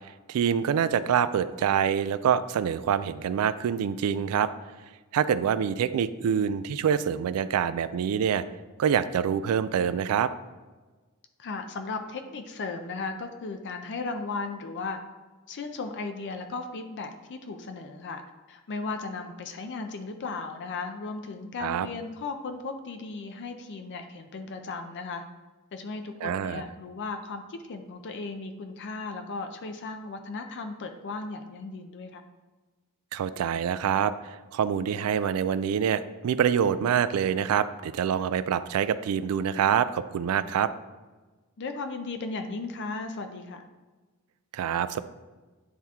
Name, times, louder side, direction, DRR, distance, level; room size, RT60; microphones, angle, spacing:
voice 1, 0.0-4.5 5.1-8.4 8.8-10.3 21.6-21.9 26.2-26.6 33.1-40.7 44.5-45.0, right 8 dB, 75° right, 15 dB, 0.3 m, -26 dB
voice 2, 11.4-15.0 15.5-18.2 18.5-25.2 25.7-32.2 41.6-43.7, left 3 dB, 55° left, 7 dB, 0.4 m, -36 dB
9.5 x 3.5 x 2.9 m, 1.3 s
head